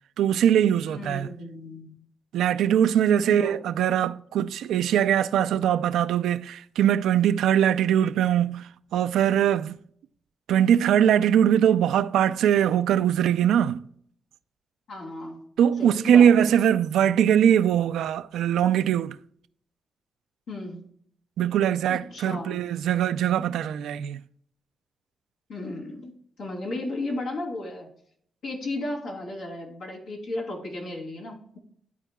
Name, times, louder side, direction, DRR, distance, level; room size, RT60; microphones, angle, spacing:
voice 1, 0.2-1.3 2.3-9.8 10.5-13.8 15.6-19.2 21.4-24.2, right 9 dB, 85° right, 0.4 m, -21 dB
voice 2, 0.8-1.9 3.2-3.6 3.8-3.9 14.9-15.4 15.8-16.5 20.5-20.8 21.9-22.6 25.5-26.1 26.4-27.9 28.4-31.6, left 2 dB, 85° left, 2.8 m, -34 dB
12.5 x 4.5 x 2.3 m
cardioid pair, 65°, 0 cm